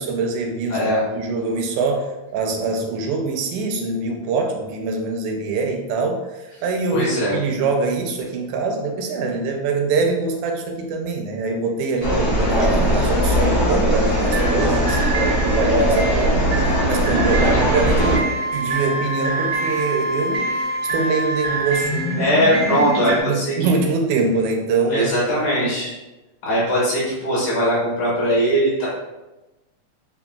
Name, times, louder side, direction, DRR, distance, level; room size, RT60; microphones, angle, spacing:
voice 1, 0.0-0.9 1.1-6.3 6.6-16.4 16.9-20.5 20.9-22.3 22.5-22.7 23.0-25.1, right 4 dB, 80° right, 2 dB, 1.8 m, -24 dB
voice 2, 0.7-1.0 6.9-7.4 14.8-15.4 17.3-17.6 22.2-23.7 24.9-26.0 26.4-28.9, equal, 70° left, -7 dB, 3.0 m, -20 dB
sound 1, 12.0-18.2, equal, 50° left, 1.2 m, -19 dB
sound 2, 14.1-23.2, right 2 dB, 45° right, 0.6 m, -28 dB
Wind instrument woodwind instrument, 18.0-21.7, right 1 dB, 90° left, 2.1 m, -26 dB
6.5 x 2.4 x 2.2 m, 1.1 s
omnidirectional pair, 3.5 m